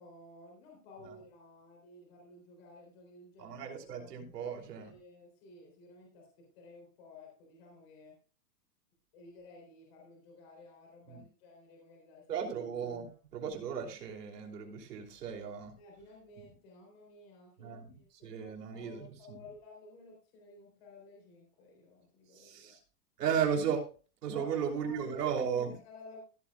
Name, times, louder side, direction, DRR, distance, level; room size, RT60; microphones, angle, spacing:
voice 1, 0.0-3.6 3.9-8.2 9.1-12.5 15.8-22.8 24.3-26.2, left 2 dB, 40° left, -1 dB, 3.7 m, -55 dB
voice 2, 3.4-4.9 11.1-11.2 12.3-15.7 17.6-19.4 22.3-22.8 23.2-23.8 24.2-25.7, right 7 dB, 80° right, 2 dB, 3.2 m, -35 dB
15.5 x 8.4 x 2.4 m, 0.36 s
supercardioid pair, 175°, 47 cm